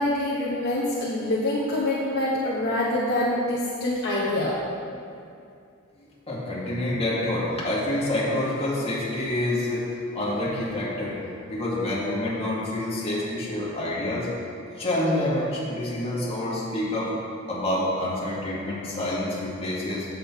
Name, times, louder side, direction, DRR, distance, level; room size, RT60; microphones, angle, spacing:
voice 1, 0.0-4.6, left 1 dB, 50° left, -7 dB, 1.1 m, -25 dB
voice 2, 6.3-9.9 10.1-11.2 11.5-14.3 14.8-17.1 17.5-20.1, left 1 dB, 25° left, -7 dB, 2.1 m, -27 dB
8.4 x 7.6 x 4.5 m, 2.5 s
head